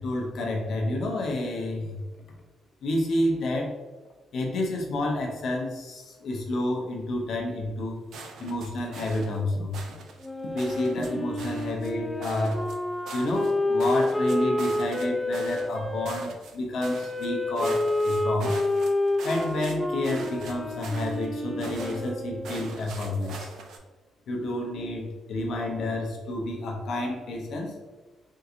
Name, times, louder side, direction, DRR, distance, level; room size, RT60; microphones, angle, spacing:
voice 1, 0.0-2.0 2.8-3.7 4.3-8.0 8.4-9.8 10.5-12.6 13.1-18.6 19.2-23.5 24.3-27.7, left 1 dB, 65° left, 0 dB, 0.7 m, -29 dB
sound 1, 8.1-9.4 9.7-10.3 10.6-11.1 11.4-11.9 12.2-13.5 13.8-15.0 15.3-15.8 16.0-16.6 16.8-17.3 17.5-19.7 20.0-21.3 21.6-22.1 22.4-23.8, right 4 dB, 75° right, 0.5 m, -43 dB
Wind instrument woodwind instrument, 10.2-16.1 16.8-22.6, left 1 dB, 10° left, 0.4 m, -29 dB
3.7 x 2.8 x 2.5 m, 1.2 s
cardioid pair, 90°, 0 cm